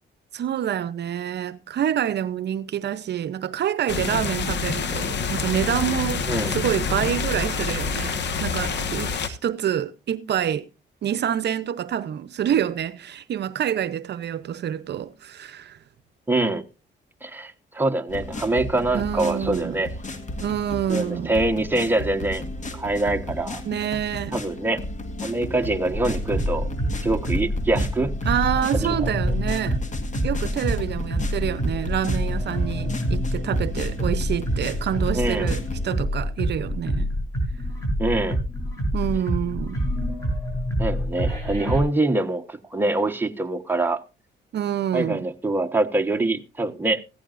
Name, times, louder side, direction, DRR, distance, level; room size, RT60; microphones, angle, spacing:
voice 1, 0.3-10.7 11.0-15.8 18.9-19.8 20.4-21.4 23.6-24.4 28.2-29.8 30.2-37.1 38.9-39.8 44.5-45.3, right 10 dB, 60° right, 0.7 m, -27 dB
sound 1, 3.9-9.3, left 5 dB, 60° left, 1.4 m, -27 dB
voice 2, 16.3-16.6 17.2-19.9 20.9-22.4 22.7-23.6 24.3-24.8 25.2-26.7 27.0-28.1 28.8-29.1 35.1-35.5 38.0-38.4 40.8-44.0 44.9-47.0, right 2 dB, 10° right, 1.2 m, -24 dB
sound 2, 18.1-35.9, left 1 dB, 40° left, 1.8 m, -34 dB
sound 3, 25.9-41.8, equal, 15° left, 7.8 m, -27 dB
15.5 x 14.0 x 2.5 m
cardioid pair, 90°, 20 cm